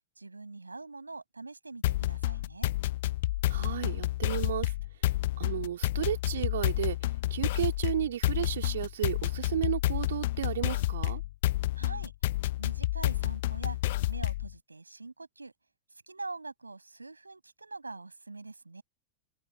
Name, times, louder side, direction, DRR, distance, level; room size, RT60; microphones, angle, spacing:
voice 1, 0.2-2.7 11.8-12.1 12.6-13.8 14.1-15.5 16.1-18.8, right 3 dB, 80° right, 6.6 m, -44 dB
sound 1, 1.8-14.5, left 17 dB, 55° left, 1.1 m, -30 dB
voice 2, 3.5-4.7 5.4-11.2, right 11 dB, 60° right, 2.7 m, -33 dB
open air
figure-of-eight pair, 90°, 0 cm